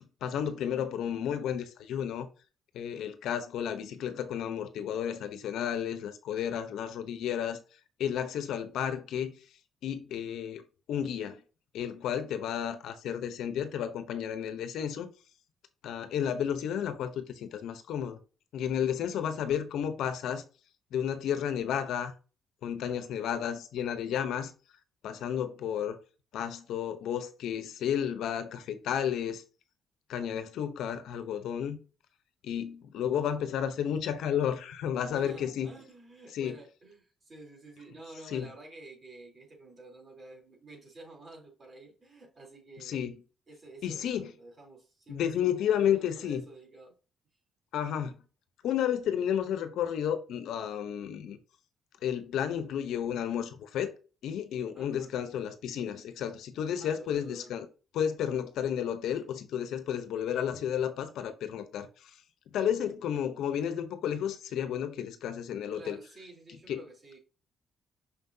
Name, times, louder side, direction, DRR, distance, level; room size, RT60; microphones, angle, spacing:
voice 1, 0.0-2.3 2.7-7.6 8.0-9.3 9.8-10.6 10.9-11.4 11.7-15.1 15.8-18.2 18.5-20.4 20.9-22.1 22.6-24.5 25.0-26.0 26.3-29.4 30.1-31.8 32.4-35.7 36.3-36.6 38.3-38.5 42.8-43.2 43.8-44.3 45.1-46.4 47.7-48.2 48.6-51.4 52.0-53.9 54.2-57.7 57.9-62.1 62.5-66.0 66.7-66.8, left 9 dB, 80° left, 0.9 m, -32 dB
voice 2, 35.1-43.0 43.5-47.0 54.7-55.1 56.8-57.5 65.7-67.2, right 2 dB, 35° right, 3.6 m, -50 dB
6.1 x 5.8 x 2.8 m
cardioid pair, 90°, 0 cm